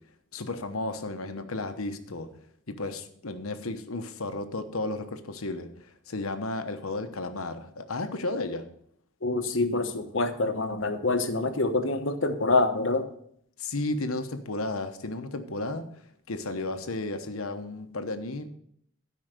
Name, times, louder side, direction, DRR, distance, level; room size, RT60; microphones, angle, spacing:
voice 1, 0.3-2.3 2.7-8.7 13.6-15.9 16.3-18.5, left 2 dB, 90° left, 8 dB, 1.1 m, -33 dB
voice 2, 9.2-13.1, left 2 dB, 60° left, 7 dB, 1.1 m, -26 dB
12.5 x 5.6 x 6.7 m, 0.67 s
head